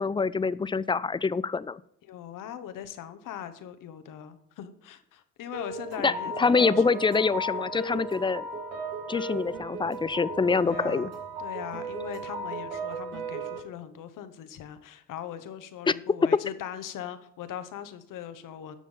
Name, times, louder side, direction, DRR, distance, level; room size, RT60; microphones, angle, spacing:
voice 1, 0.0-1.8 6.0-8.4 9.1-11.1 15.9-16.0, left 4 dB, 15° left, 18 dB, 0.4 m, -25 dB
voice 2, 2.0-7.2 10.5-11.1 11.4-18.8, left 10 dB, 65° left, 11 dB, 1.1 m, -40 dB
sound 1, 5.5-13.6, right 3 dB, 85° right, 2.3 m, -36 dB
11.0 x 6.3 x 5.5 m, 0.71 s
hypercardioid pair, 55°, 35 cm